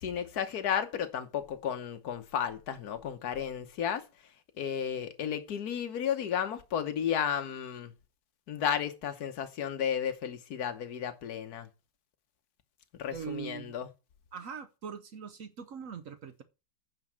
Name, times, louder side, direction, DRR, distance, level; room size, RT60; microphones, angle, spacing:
voice 1, 0.0-4.0 4.6-7.9 8.5-11.7 13.0-13.9, left 8 dB, 55° left, 1.3 m, -33 dB
voice 2, 13.1-13.9 14.3-16.4, right 7 dB, 70° right, 0.7 m, -42 dB
9.4 x 5.4 x 6.2 m
omnidirectional pair, 2.3 m